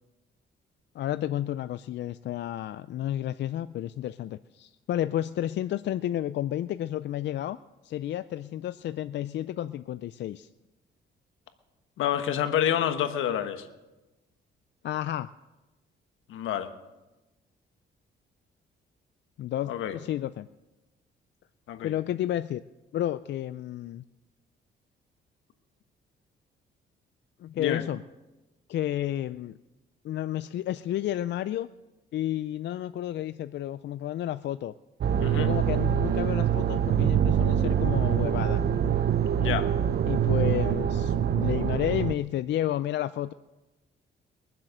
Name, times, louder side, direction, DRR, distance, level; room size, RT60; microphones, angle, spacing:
voice 1, 0.9-7.6 7.8-10.5 14.8-15.3 19.4-20.5 21.8-22.6 22.9-24.0 27.4-28.0 28.7-29.6 30.0-31.7 32.1-34.7 35.3-38.6 40.1-43.3, left 12 dB, 65° left, 13 dB, 0.4 m, -31 dB
voice 2, 12.0-13.6 16.3-16.7 19.7-20.0 21.7-21.9 27.6-27.8 35.2-35.5 39.4-39.7, left 10 dB, 85° left, 8 dB, 1.3 m, -28 dB
sound 1, 35.0-42.1, right 9 dB, 55° right, 0.7 m, -25 dB
22.5 x 7.6 x 6.5 m, 1.1 s
cardioid pair, 90°, 20 cm